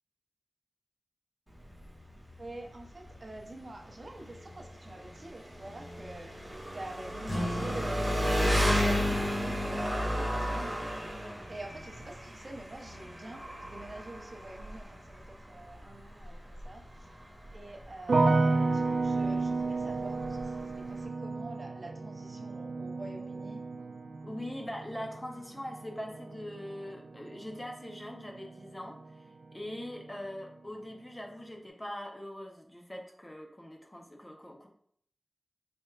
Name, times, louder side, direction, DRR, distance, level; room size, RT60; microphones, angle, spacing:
Engine, 1.5-21.1, equal, 10° right, 1.1 m, -34 dB
voice 1, 2.4-6.3 6.7-10.9 11.2-16.8 17.5-23.6, right 1 dB, 45° right, 2 dB, 0.6 m, -46 dB
sound 1, 7.2-12.3, equal, 70° left, 1.2 m, -41 dB
sound 2, 18.1-29.2 29.4-30.2, right 3 dB, 90° right, 0.3 m, -32 dB
voice 2, 24.2-34.7, left 1 dB, 20° left, 1 dB, 0.6 m, -42 dB
4.3 x 3.5 x 2.3 m, 0.65 s
wide cardioid pair, 80°, 0 cm